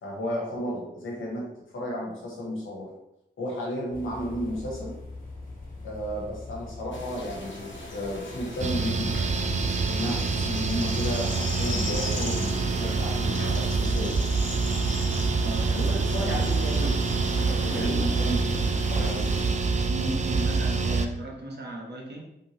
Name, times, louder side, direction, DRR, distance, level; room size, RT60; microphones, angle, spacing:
voice 1, 0.0-1.5 1.7-2.9 3.4-5.0 5.8-9.2 9.9-14.1 15.7-16.9 17.5-18.6 18.9-19.3, equal, 90° left, -3 dB, 1.0 m, -33 dB
sound 1, 3.9-10.8, left 2 dB, 45° left, 1.2 m, -42 dB
sound 2, 6.9-19.5, left 2 dB, 70° left, 0.8 m, -39 dB
sound 3, 8.6-21.1, right 4 dB, 35° right, 0.4 m, -26 dB
voice 2, 15.4-16.4 17.7-18.1 19.9-22.2, right 1 dB, 60° right, -2 dB, 1.0 m, -35 dB
3.3 x 2.8 x 2.9 m, 0.85 s
cardioid pair, 45°, 20 cm